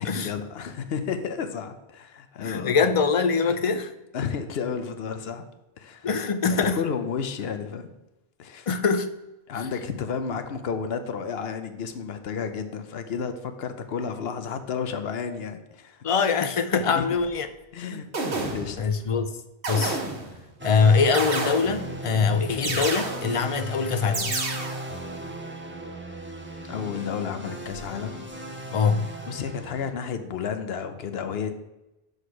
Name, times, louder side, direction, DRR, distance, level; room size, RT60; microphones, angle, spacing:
voice 1, 0.0-2.9 4.1-5.4 5.8-6.1 6.5-7.9 8.4-8.7 9.5-16.0 16.8-17.1 17.7-18.1 18.4-18.8 26.6-28.1 29.3-31.5, left 6 dB, 75° left, 8 dB, 0.9 m, -32 dB
voice 2, 2.4-3.9 6.0-6.8 8.7-9.1 16.0-17.5 17.9-18.0 18.8-19.3 19.7-20.0 20.6-24.4 28.7-29.1, left 5 dB, 45° left, 9 dB, 0.5 m, -23 dB
sound 1, 17.2-17.3 18.1-18.9 19.6-20.4 21.1-22.0 22.6-23.5 24.1-25.0, right 3 dB, 60° right, 1.4 m, -30 dB
sound 2, 20.6-29.9, right 1 dB, 15° right, 0.7 m, -37 dB
6.1 x 5.1 x 4.8 m, 0.95 s
omnidirectional pair, 1.1 m